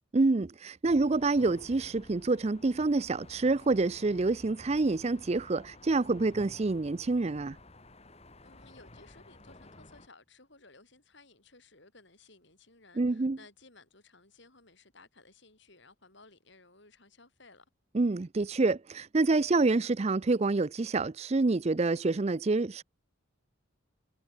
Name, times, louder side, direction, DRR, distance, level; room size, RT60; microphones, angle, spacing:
voice 1, 0.1-7.6 13.0-13.4 17.9-22.8, right 3 dB, 30° right, 0.4 m, -27 dB
sound 1, 0.8-10.1, left 1 dB, 30° left, 3.4 m, -53 dB
voice 2, 8.4-17.7, left 3 dB, 55° left, 7.0 m, -58 dB
head